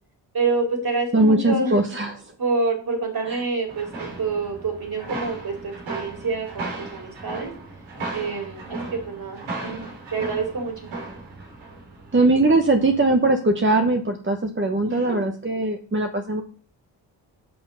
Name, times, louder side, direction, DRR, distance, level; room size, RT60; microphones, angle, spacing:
voice 1, 0.3-1.8 2.4-7.5 8.1-9.9 10.1-10.9 14.8-15.2, right 4 dB, 50° right, 3 dB, 4.4 m, -27 dB
voice 2, 1.1-2.2 3.2-3.4 12.1-16.4, right 2 dB, 25° right, 5 dB, 1.2 m, -20 dB
sound 1, 3.7-13.2, right 2 dB, 90° right, 3.1 m, -36 dB
7.2 x 6.3 x 6.5 m, 0.41 s
supercardioid pair, 55°, 46 cm